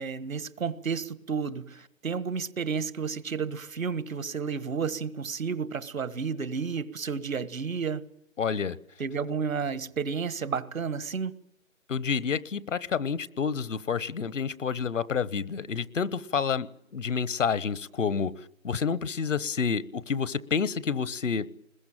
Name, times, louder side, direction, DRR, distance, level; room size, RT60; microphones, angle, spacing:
voice 1, 0.0-8.0 9.0-11.3, right 6 dB, 80° right, 1.6 m, -31 dB
voice 2, 8.4-8.8 11.9-16.7 16.9-18.3 18.6-21.5, left 6 dB, 65° left, 1.1 m, -29 dB
21.5 x 21.0 x 9.0 m
hypercardioid pair, 165°, 40 cm